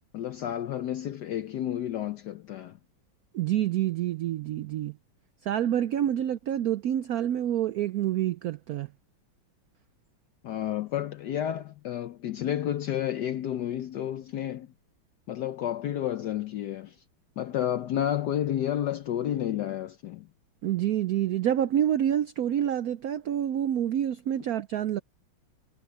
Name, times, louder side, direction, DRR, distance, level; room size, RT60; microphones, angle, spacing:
voice 1, 0.1-2.8 10.4-14.7 15.3-16.9 17.4-20.3, left 11 dB, 65° left, 1.1 m, -31 dB
voice 2, 3.3-5.0 5.4-8.9 20.6-25.0, right 11 dB, 90° right, 0.8 m, -27 dB
omnidirectional pair, 2.3 m